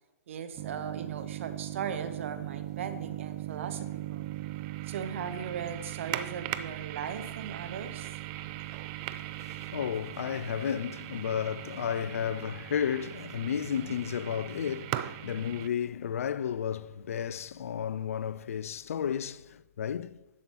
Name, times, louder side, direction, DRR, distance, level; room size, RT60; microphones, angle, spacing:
voice 1, 0.3-4.3 4.9-8.5 13.8-14.0, right 7 dB, 50° right, 0.9 m, -38 dB
sound 1, 0.6-15.7, right 14 dB, 30° right, 0.4 m, -39 dB
voice 2, 9.4-20.2, left 8 dB, 60° left, 0.4 m, -33 dB
11.0 x 7.4 x 2.8 m
figure-of-eight pair, 125°, 9 cm